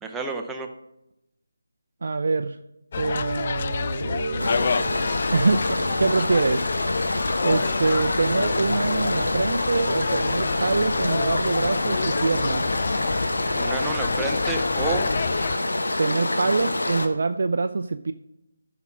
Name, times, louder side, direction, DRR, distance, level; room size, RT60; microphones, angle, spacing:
voice 1, 0.0-0.7 13.6-15.1, right 4 dB, 5° right, 3 dB, 0.7 m, -30 dB
voice 2, 2.0-2.6 3.0-5.0 5.3-6.7 7.4-12.6 16.0-18.1, right 3 dB, 50° right, 8 dB, 0.5 m, -25 dB
sound 1, 2.9-15.6, left 6 dB, 35° left, 0.3 m, -29 dB
sound 2, 4.4-17.1, left 1 dB, 70° left, 1.3 m, -26 dB
10.5 x 5.9 x 6.0 m, 0.87 s
figure-of-eight pair, 160°, 0 cm